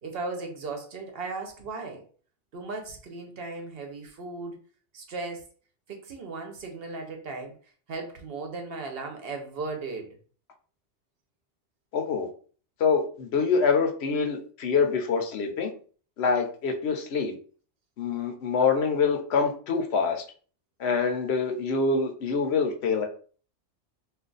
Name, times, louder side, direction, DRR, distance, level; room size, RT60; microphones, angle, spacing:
voice 1, 0.0-2.1 2.5-4.6 4.9-5.5 5.9-7.6 7.9-10.1, right 3 dB, 60° right, 3 dB, 0.8 m, -36 dB
voice 2, 11.9-12.3 12.8-15.7 16.2-17.3 18.0-20.2 20.8-23.1, left 5 dB, 70° left, 3 dB, 0.9 m, -25 dB
2.4 x 2.3 x 3.8 m, 0.41 s
omnidirectional pair, 1.2 m